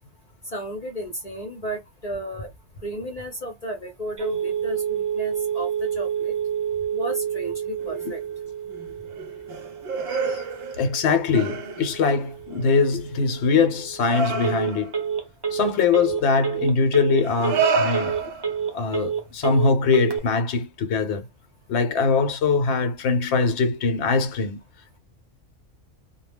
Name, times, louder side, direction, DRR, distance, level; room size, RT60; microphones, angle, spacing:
voice 1, 0.5-2.5 2.8-6.3 6.9-8.2, equal, 40° left, 0.7 m, -33 dB
Telephone, 4.2-20.2, right 8 dB, 40° right, 0.3 m, -29 dB
sound 1, 7.8-8.3 8.7-11.0 11.3-12.0 12.5-12.9 14.0-15.0 16.2-16.4 17.2-18.8 20.1-20.2, right 4 dB, 60° right, 0.8 m, -29 dB
voice 2, 10.1-10.4 10.8-14.9 15.5-18.1 18.7-21.2 21.7-24.6, left 4 dB, 65° left, 0.9 m, -22 dB
2.2 x 2.0 x 3.4 m
omnidirectional pair, 1.3 m